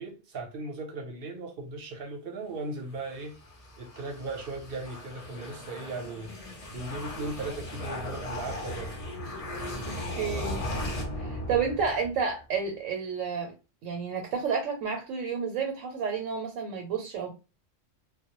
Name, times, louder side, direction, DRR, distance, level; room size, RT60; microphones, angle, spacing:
voice 1, 0.0-3.3 3.8-6.3 6.7-8.9, right 2 dB, 55° right, 0.8 m, -37 dB
sound 1, 2.9-12.3, left 1 dB, 45° left, 0.5 m, -37 dB
voice 2, 9.9-10.6 11.2-13.5 13.8-17.3, right 6 dB, 85° right, 1.0 m, -31 dB
2.2 x 2.0 x 2.9 m
omnidirectional pair, 1.3 m